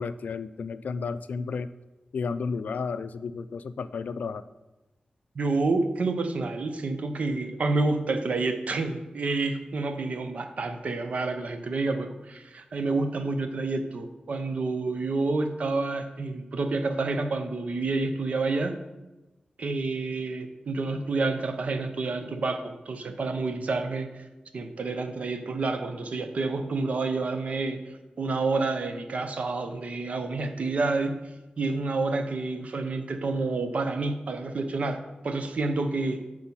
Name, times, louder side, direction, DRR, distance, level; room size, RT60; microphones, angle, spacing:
voice 1, 0.0-1.7 2.1-4.4, left 5 dB, 75° left, 13 dB, 0.3 m, -32 dB
voice 2, 5.4-18.8 19.6-24.1 24.5-31.1 31.6-36.3, right 3 dB, 55° right, 8 dB, 0.7 m, -29 dB
8.8 x 4.8 x 5.5 m, 1.1 s
wide cardioid pair, 155°, 3 cm